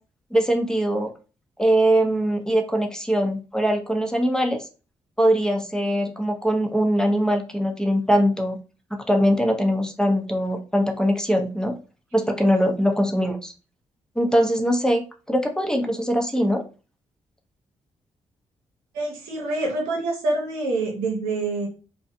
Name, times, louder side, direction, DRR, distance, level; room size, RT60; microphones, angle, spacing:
voice 1, 0.3-1.1 1.6-4.6 5.2-8.6 8.9-11.7 12.1-13.5 14.2-16.6, equal, 5° left, 4 dB, 0.6 m, -22 dB
voice 2, 18.9-21.7, right 2 dB, 85° right, -2 dB, 0.8 m, -26 dB
2.4 x 2.1 x 2.6 m, 0.34 s
hypercardioid pair, 40°, 14 cm